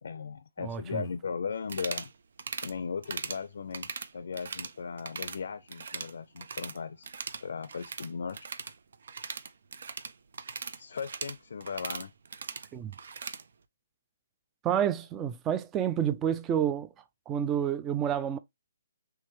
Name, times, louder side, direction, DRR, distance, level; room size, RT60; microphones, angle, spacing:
voice 1, 0.0-2.1 2.6-7.1 7.4-8.4 10.8-12.1, left 5 dB, 70° left, 0.5 m, -37 dB
voice 2, 0.6-1.0 12.7-12.9 14.6-16.9 17.3-18.4, right 9 dB, 15° right, 0.4 m, -29 dB
sound 1, 1.6-2.1 2.4-2.7 3.0-3.4 3.7-4.7 5.0-5.4 5.7-6.8 7.0-13.4, right 5 dB, 65° right, 0.5 m, -39 dB
4.7 x 3.3 x 3.0 m
hypercardioid pair, 155°, 0 cm